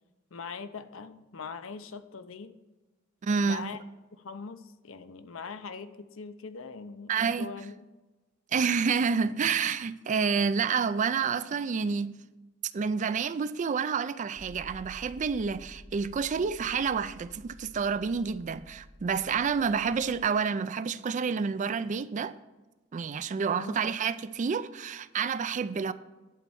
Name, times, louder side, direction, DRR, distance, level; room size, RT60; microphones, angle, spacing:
voice 1, 0.3-2.5 3.4-3.8 4.1-7.7 11.2-11.4 23.5-23.8, left 5 dB, 70° left, 0.6 m, -42 dB
voice 2, 3.2-3.7 7.1-7.5 8.5-12.1 12.7-22.3 22.9-25.9, right 5 dB, 40° right, 0.3 m, -29 dB
sound 1, 14.4-20.3, equal, 5° right, 0.7 m, -51 dB
11.0 x 4.3 x 7.1 m
head